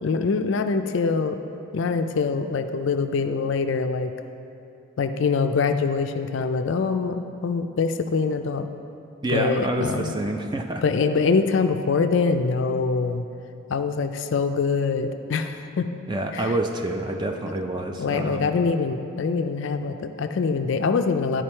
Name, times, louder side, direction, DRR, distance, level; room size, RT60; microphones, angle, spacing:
voice 1, 0.0-1.4 1.7-4.1 5.0-8.7 9.3-10.1 10.8-13.3 13.7-15.9 16.3-16.5 17.5-17.6 18.0-21.4, left 4 dB, 60° left, 8 dB, 0.4 m, -24 dB
voice 2, 9.2-10.8 16.1-18.5, right 2 dB, 20° right, 3 dB, 0.4 m, -27 dB
11.5 x 5.0 x 4.4 m, 2.6 s
head